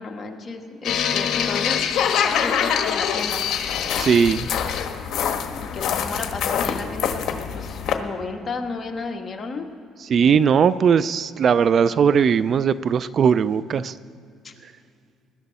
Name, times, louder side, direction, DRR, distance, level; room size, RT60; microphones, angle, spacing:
voice 1, 0.0-1.8 2.2-3.5 5.6-9.7 14.4-14.5, left 4 dB, 35° left, 2 dB, 1.8 m, -32 dB
sound 1, 0.8-7.9, left 8 dB, 65° left, 1.3 m, -24 dB
voice 2, 4.0-4.5 10.0-13.9, right 7 dB, 50° right, 17 dB, 0.4 m, -19 dB
20.5 x 11.5 x 4.2 m, 2.5 s
supercardioid pair, 85°, 0 cm